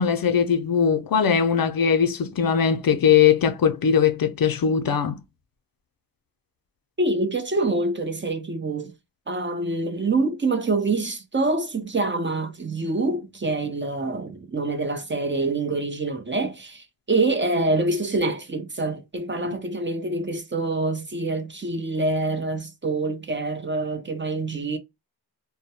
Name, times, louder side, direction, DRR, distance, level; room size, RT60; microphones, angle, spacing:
voice 1, 0.0-5.2 19.4-19.6, left 7 dB, 55° left, 0.5 m, -20 dB
voice 2, 7.0-8.9 9.3-24.8, right 2 dB, 25° right, 0.5 m, -26 dB
2.2 x 2.1 x 2.8 m
cardioid pair, 40°, 43 cm